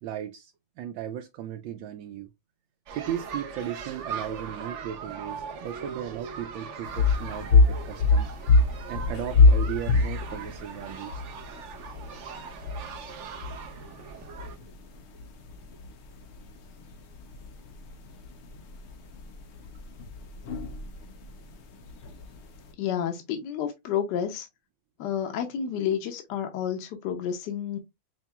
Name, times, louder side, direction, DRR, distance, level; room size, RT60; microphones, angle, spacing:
voice 1, 0.0-2.3 2.9-8.4 8.9-11.2, right 10 dB, 85° right, 1.3 m, -36 dB
Children's Playground, 2.9-14.6, right 6 dB, 70° right, 0.7 m, -40 dB
sound 1, 6.8-22.7, left 3 dB, 85° left, 0.6 m, -26 dB
voice 2, 22.8-24.5 25.0-27.8, left 9 dB, 70° left, 1.3 m, -30 dB
5.4 x 2.8 x 2.3 m
omnidirectional pair, 2.0 m